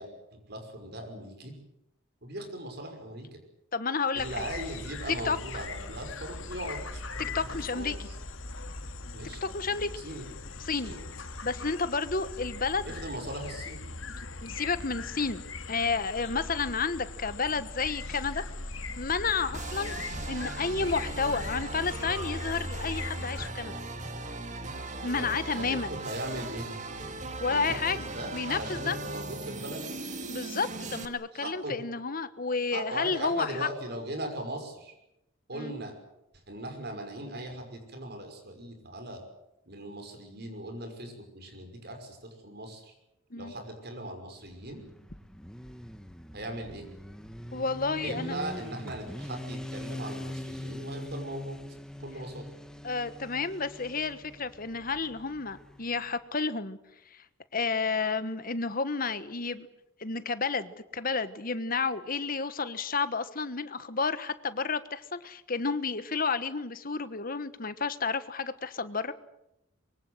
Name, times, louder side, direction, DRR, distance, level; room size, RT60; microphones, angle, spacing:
voice 1, 0.0-1.5 2.2-3.4 4.1-8.0 9.1-9.4 10.0-10.3 10.8-11.0 12.9-13.8 25.1-26.7 27.5-30.0 31.3-31.8 32.7-34.9 35.5-35.9 36.5-39.2 39.7-42.9 43.4-44.8 46.3-46.9 48.0-51.6 52.0-52.4, right 1 dB, 55° right, 5 dB, 5.7 m, -39 dB
voice 2, 3.7-4.4 5.2-5.4 7.2-8.0 9.4-9.9 10.6-11.0 11.4-12.9 14.1-15.4 15.7-18.4 19.0-20.0 20.3-23.8 25.0-26.0 27.4-29.0 30.3-33.7 35.5-35.7 43.3-43.5 47.5-48.4 52.8-56.8 57.5-59.7 60.0-69.1, left 4 dB, 45° left, 12 dB, 1.4 m, -31 dB
sound 1, 4.2-23.5, left 3 dB, 80° left, 2.1 m, -40 dB
sound 2, 19.5-31.1, right 2 dB, 35° right, 2.2 m, -38 dB
Motorcycle, 44.4-56.1, left 1 dB, 5° left, 1.3 m, -43 dB
24.5 x 23.0 x 8.0 m, 0.85 s
head